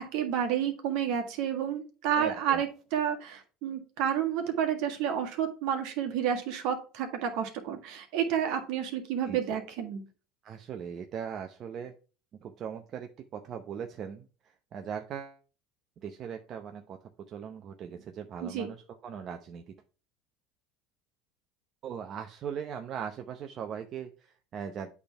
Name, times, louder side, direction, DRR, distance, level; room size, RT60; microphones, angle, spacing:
voice 1, 0.0-10.0 18.4-18.7, right 9 dB, 70° right, 4 dB, 1.7 m, -30 dB
voice 2, 2.1-2.6 9.3-9.4 10.4-11.9 12.4-15.4 16.0-17.0 17.3-19.7 21.8-24.9, right 7 dB, 45° right, 5 dB, 0.7 m, -39 dB
8.5 x 3.5 x 4.6 m, 0.35 s
supercardioid pair, 95°, 0 cm